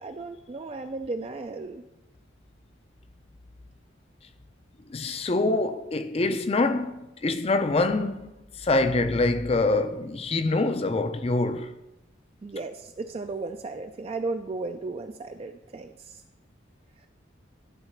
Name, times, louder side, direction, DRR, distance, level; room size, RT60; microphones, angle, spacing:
voice 1, 0.0-1.8 6.3-6.4 12.4-16.2, right 3 dB, 30° right, 0.3 m, -35 dB
voice 2, 4.9-8.3 8.6-11.8, left 2 dB, 30° left, 0.4 m, -25 dB
12.0 x 4.0 x 5.7 m
head